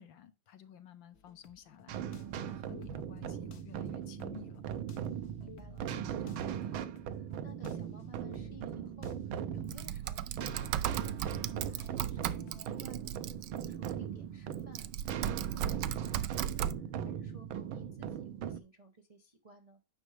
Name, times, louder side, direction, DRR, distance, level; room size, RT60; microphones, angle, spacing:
voice 1, 0.0-4.6, left 9 dB, 70° left, 1.6 m, -53 dB
sound 1, 1.1-12.8, left 5 dB, 45° left, 1.0 m, -57 dB
sound 2, 1.9-18.6, right 8 dB, 90° right, 1.6 m, -39 dB
voice 2, 5.0-5.8 6.2-14.9 15.2-19.8, right 1 dB, 25° right, 0.8 m, -56 dB
Typing, 9.7-13.9 14.5-16.7, right 11 dB, 75° right, 1.1 m, -37 dB
9.7 x 6.1 x 3.3 m
omnidirectional pair, 2.2 m